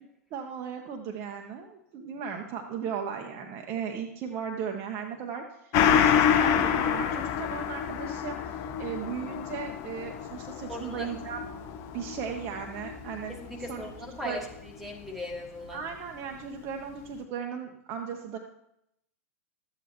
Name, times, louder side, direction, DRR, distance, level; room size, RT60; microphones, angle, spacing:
voice 1, 0.3-11.4 11.9-13.9 14.2-14.4 15.7-18.4, right 7 dB, 30° right, 3 dB, 0.7 m, -37 dB
Gong, 5.7-14.7 15.0-15.1, left 8 dB, 35° left, 0.6 m, -28 dB
voice 2, 10.7-11.1 13.3-15.8, left 1 dB, 5° right, 0 dB, 1.4 m, -38 dB
12.5 x 8.3 x 2.9 m, 0.78 s
figure-of-eight pair, 100°, 8 cm